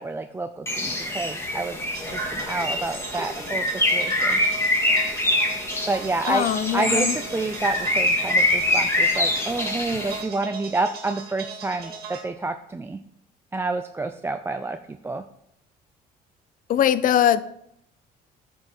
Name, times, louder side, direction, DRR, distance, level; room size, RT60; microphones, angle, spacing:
voice 1, 0.0-1.8 2.1-3.7 3.9-4.4 5.9-6.5 6.7-13.0 13.5-15.2, right 3 dB, 15° right, 7 dB, 0.4 m, -29 dB
Bird, 0.7-10.2, left 1 dB, 15° left, 1.8 m, -24 dB
sound 1, 1.9-12.2, right 5 dB, 65° right, 1.8 m, -39 dB
voice 2, 6.3-7.1 16.7-17.4, left 10 dB, 55° left, 16 dB, 0.5 m, -21 dB
9.6 x 5.3 x 4.4 m, 0.75 s
cardioid pair, 110°, 17 cm